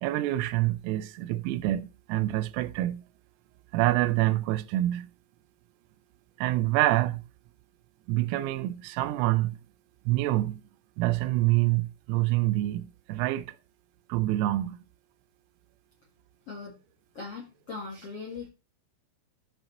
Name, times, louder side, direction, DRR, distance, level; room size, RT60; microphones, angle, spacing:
voice 1, 0.0-3.0 3.7-5.1 6.4-7.2 8.1-9.6 10.1-10.6 11.0-13.6 14.1-14.8, right 16 dB, 90° right, 3.4 m, -26 dB
voice 2, 17.1-18.5, left 4 dB, 60° left, 1.5 m, -39 dB
13.5 x 5.4 x 4.4 m
omnidirectional pair, 6.0 m